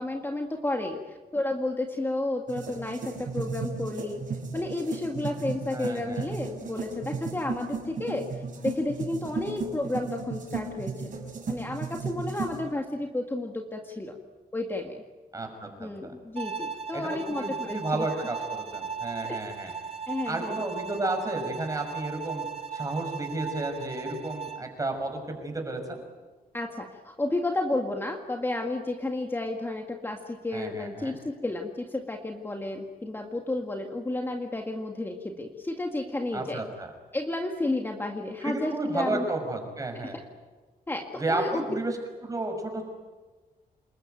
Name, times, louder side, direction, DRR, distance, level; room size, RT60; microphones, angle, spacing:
voice 1, 0.0-4.2 4.5-11.2 11.5-14.2 14.5-15.0 15.8-18.1 19.2-19.4 20.1-20.6 26.5-36.6 37.1-39.2 40.9-41.8, left 2 dB, 15° left, 2 dB, 1.9 m, -32 dB
sound 1, 2.5-12.6, right 5 dB, 55° right, 6.1 m, -35 dB
voice 2, 5.7-6.2 15.3-16.1 16.9-19.7 20.3-22.4 22.7-26.0 30.5-31.2 36.3-36.9 38.4-40.2 41.2-41.9 42.2-42.8, right 2 dB, 20° right, 4 dB, 6.1 m, -32 dB
Bowed string instrument, 16.4-24.7, right 6 dB, 40° right, 2.3 m, -37 dB
28.0 x 21.5 x 9.3 m, 1.3 s
wide cardioid pair, 150°, 16 cm